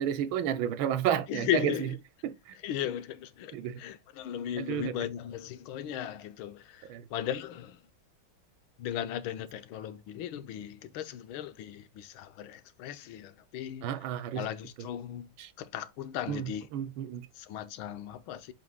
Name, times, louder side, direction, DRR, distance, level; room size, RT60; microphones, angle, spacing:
voice 1, 0.0-1.9 2.2-2.6 3.5-3.8 4.6-5.0 6.9-7.1 13.8-14.5 14.8-14.9 15.4-15.5 16.3-17.3, right 10 dB, 80° right, 1.6 m, -32 dB
voice 2, 1.3-1.9 2.6-7.8 8.8-13.9 14.3-16.6 17.3-18.5, left 10 dB, 90° left, 1.6 m, -36 dB
7.9 x 5.2 x 2.3 m
omnidirectional pair, 2.2 m